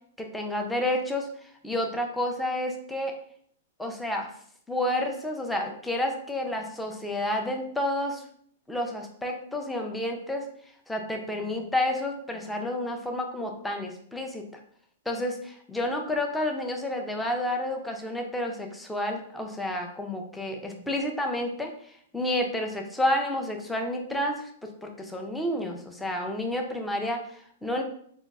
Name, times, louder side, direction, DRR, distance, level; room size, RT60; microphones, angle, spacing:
voice 1, 0.2-3.2 3.8-4.3 4.7-8.2 8.7-10.5 10.9-14.5 15.1-27.8, left 1 dB, 5° left, 2 dB, 0.3 m, -30 dB
5.1 x 2.2 x 2.3 m, 0.63 s
supercardioid pair, 170°, 0 cm